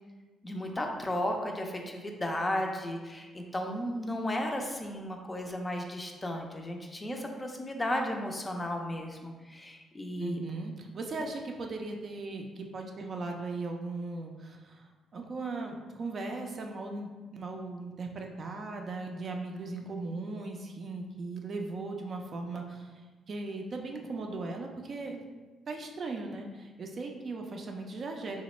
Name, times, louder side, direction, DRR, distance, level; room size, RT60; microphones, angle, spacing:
voice 1, 0.4-10.4, left 1 dB, 20° left, 2 dB, 0.4 m, -34 dB
voice 2, 10.2-25.2 25.7-28.4, right 3 dB, 50° right, 2 dB, 0.4 m, -38 dB
3.0 x 2.1 x 4.1 m, 1.3 s
cardioid pair, 90°, 0 cm